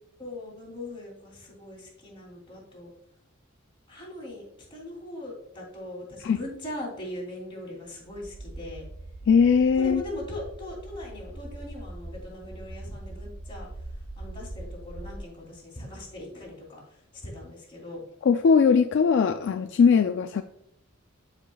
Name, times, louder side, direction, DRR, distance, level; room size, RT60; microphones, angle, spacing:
voice 1, 0.2-2.9 3.9-8.8 9.8-13.7 14.2-18.0, left 1 dB, 25° left, -3 dB, 2.9 m, -40 dB
sound 1, 7.9-15.2, right 1 dB, 40° right, 0.8 m, -42 dB
voice 2, 9.3-10.0 18.3-20.4, left 6 dB, 60° left, 8 dB, 0.3 m, -20 dB
12.0 x 5.0 x 2.3 m, 0.75 s
head